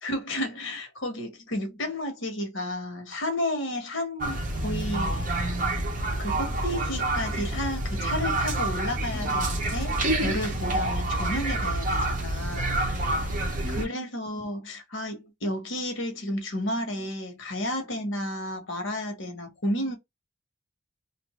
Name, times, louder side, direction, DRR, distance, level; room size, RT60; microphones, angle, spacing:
voice 1, 0.0-5.3 6.2-13.1 13.7-20.0, left 1 dB, 70° left, 1.1 m, -32 dB
sound 1, 4.2-13.9, right 2 dB, 40° right, 0.8 m, -28 dB
2.7 x 2.5 x 3.0 m
head